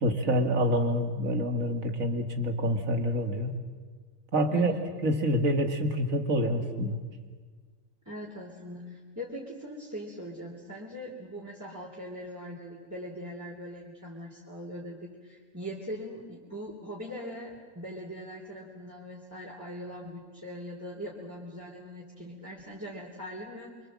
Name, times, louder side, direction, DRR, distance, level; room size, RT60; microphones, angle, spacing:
voice 1, 0.0-3.6 4.3-4.7 5.0-7.0, equal, 85° right, 5 dB, 2.6 m, -27 dB
voice 2, 4.5-4.8 8.1-23.7, equal, 10° right, -3 dB, 3.5 m, -41 dB
27.0 x 25.0 x 7.6 m, 1.5 s
omnidirectional pair, 1.4 m